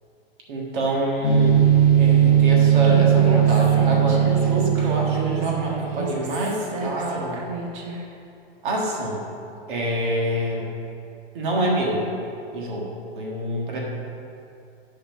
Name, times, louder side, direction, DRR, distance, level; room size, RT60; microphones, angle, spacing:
voice 1, 0.5-1.6 2.0-7.4 8.6-9.2 9.7-10.7 11.3-12.0 12.5-12.9 13.1-13.8, right 1 dB, 55° right, -2 dB, 1.7 m, -26 dB
sound 1, 1.2-6.1, right 9 dB, 25° left, 1.3 m, -18 dB
Human voice, 2.8-8.0, right 3 dB, 35° right, 0.8 m, -31 dB
9.1 x 4.8 x 5.7 m, 2.6 s
supercardioid pair, 175°, 31 cm